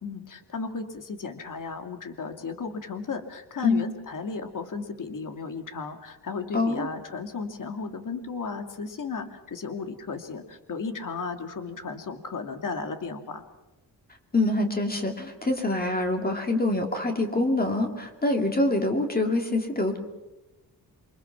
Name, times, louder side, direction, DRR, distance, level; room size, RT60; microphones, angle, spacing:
voice 1, 0.0-13.4, left 4 dB, 55° left, 7 dB, 2.5 m, -35 dB
voice 2, 6.5-6.9 14.3-20.0, left 2 dB, 25° left, 4 dB, 2.5 m, -25 dB
28.0 x 24.0 x 6.0 m, 0.99 s
wide cardioid pair, 150°, 39 cm